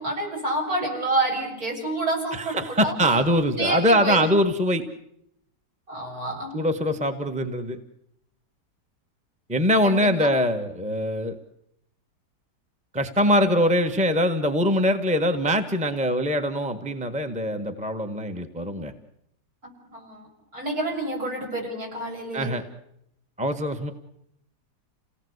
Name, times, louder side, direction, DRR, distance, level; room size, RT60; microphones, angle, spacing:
voice 1, 0.0-2.9 3.6-4.3 5.9-6.6 9.8-10.3 19.6-20.3 20.5-22.5, right 2 dB, 60° right, 1 dB, 8.1 m, -28 dB
voice 2, 2.3-4.8 6.5-7.8 9.5-11.4 12.9-18.9 22.3-22.6 23.4-23.9, equal, 5° right, 6 dB, 1.4 m, -23 dB
29.0 x 18.5 x 8.1 m, 0.77 s
omnidirectional pair, 1.8 m